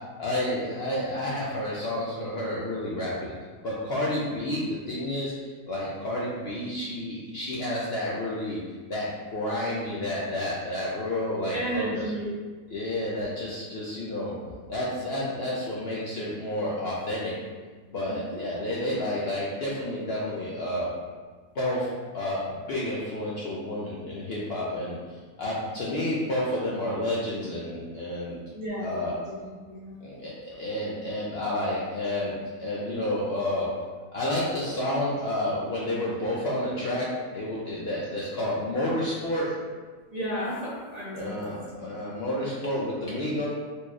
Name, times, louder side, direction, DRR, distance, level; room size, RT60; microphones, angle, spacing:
voice 1, 0.2-3.1 3.6-5.3 5.7-8.6 8.9-12.0 12.7-14.3 14.7-17.3 17.9-20.9 21.5-22.4 22.7-28.4 28.8-29.1 30.0-32.3 32.6-33.7 34.1-37.1 37.3-39.5 41.1-43.4, left 1 dB, 60° left, -6 dB, 0.7 m, -30 dB
voice 2, 11.5-12.3 14.4-14.5 18.0-18.4 28.5-30.0 40.1-41.9, equal, 40° right, -9 dB, 0.7 m, -34 dB
4.1 x 3.1 x 2.3 m, 1.4 s
omnidirectional pair, 1.5 m